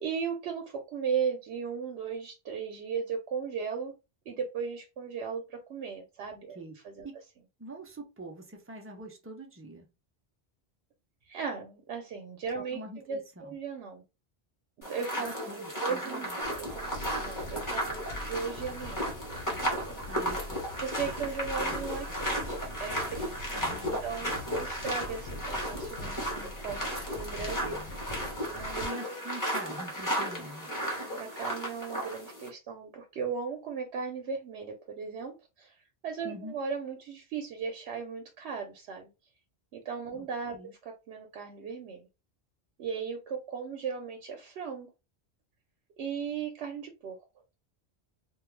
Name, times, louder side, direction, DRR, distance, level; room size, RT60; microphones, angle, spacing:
voice 1, 0.0-3.9 4.3-6.6 6.8-7.1 11.3-12.8 13.1-14.0 14.8-15.5 15.8-20.0 20.8-23.4 24.0-28.9 30.7-35.7 36.0-39.1 39.7-40.6 40.8-42.1 42.8-44.9 46.0-47.2, right 6 dB, 90° right, 0.9 m, -37 dB
voice 2, 7.6-9.9 12.6-13.6 15.2-16.4 20.1-20.7 21.6-22.4 23.5-24.5 27.4-27.9 28.8-30.7 36.2-36.6 40.1-40.3 40.5-40.7, right 1 dB, 25° right, 0.3 m, -44 dB
sound 1, 14.8-32.5, equal, 20° left, 0.9 m, -34 dB
sound 2, 16.4-28.9, left 1 dB, 75° left, 0.9 m, -43 dB
2.3 x 2.2 x 3.1 m
omnidirectional pair, 1.1 m